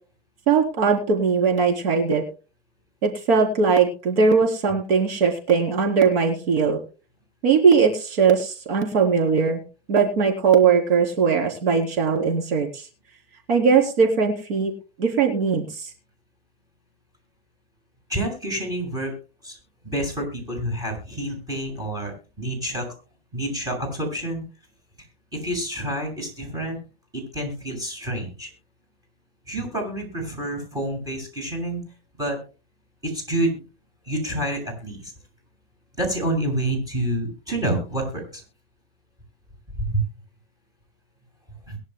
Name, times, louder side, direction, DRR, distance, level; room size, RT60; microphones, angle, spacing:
voice 1, 0.5-2.2 3.0-6.8 7.4-9.6 9.9-12.9 13.5-14.7 15.0-15.9, right 5 dB, 70° right, 3 dB, 3.7 m, -20 dB
voice 2, 18.1-19.1 19.4-19.6 19.8-22.9 23.3-24.4 25.3-26.8 27.1-28.5 29.5-31.8 32.2-32.4 33.0-33.6 34.1-35.1 36.0-38.4 39.9-40.0 41.7-41.8, right 1 dB, 10° right, 2 dB, 6.9 m, -28 dB
22.5 x 11.0 x 2.2 m, 0.34 s
supercardioid pair, 140°, 30 cm